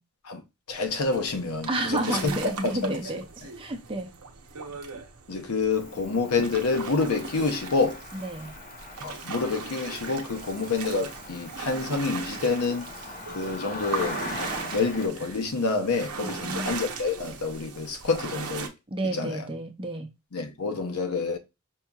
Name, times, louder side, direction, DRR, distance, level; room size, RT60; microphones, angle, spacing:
voice 1, 0.7-3.2 5.3-8.0 9.0-12.9 13.3-14.2 14.7-18.7 19.0-19.5 20.3-21.4, left 4 dB, 80° left, 0.7 m, -28 dB
sound 1, 0.7-18.7, right 5 dB, 85° right, 0.7 m, -38 dB
voice 2, 1.7-3.2 3.6-4.1 8.2-8.5 16.2-16.8 18.9-20.1, right 1 dB, 25° right, 0.6 m, -31 dB
Cricket, 5.7-15.1, left 2 dB, 40° left, 0.9 m, -41 dB
5.4 x 2.8 x 2.3 m
head